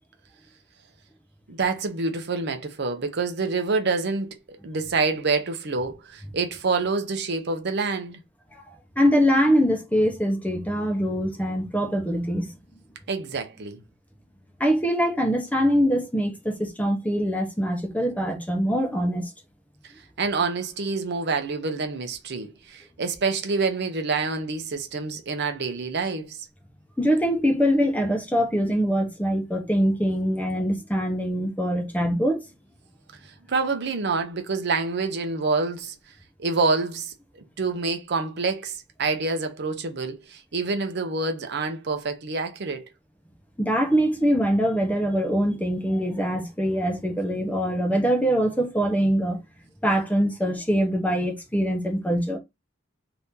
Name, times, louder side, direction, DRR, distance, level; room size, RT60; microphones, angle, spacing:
voice 1, 1.5-8.2 13.1-13.8 20.2-26.4 33.5-35.9 36.4-42.9, right 4 dB, 60° right, 0.7 m, -27 dB
voice 2, 9.0-12.6 14.6-19.3 27.0-32.4 43.6-49.4 49.8-52.4, equal, 10° left, 0.7 m, -23 dB
2.8 x 2.7 x 3.5 m
head